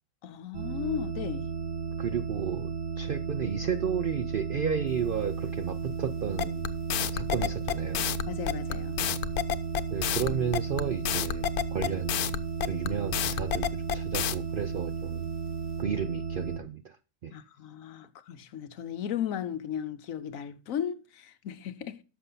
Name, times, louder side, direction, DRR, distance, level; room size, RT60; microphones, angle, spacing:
voice 1, 0.2-1.5 8.3-9.0 17.3-22.0, left 9 dB, 70° left, 1.1 m, -36 dB
sound 1, 0.5-16.6, right 6 dB, 40° right, 1.2 m, -34 dB
voice 2, 2.0-6.7 7.1-8.1 9.9-12.2 12.6-13.7 13.9-15.3 15.8-17.0 17.2-17.3, right 7 dB, 65° right, 0.5 m, -32 dB
sound 2, 6.4-14.4, left 11 dB, 85° left, 1.2 m, -29 dB
11.0 x 6.6 x 4.0 m
omnidirectional pair, 1.6 m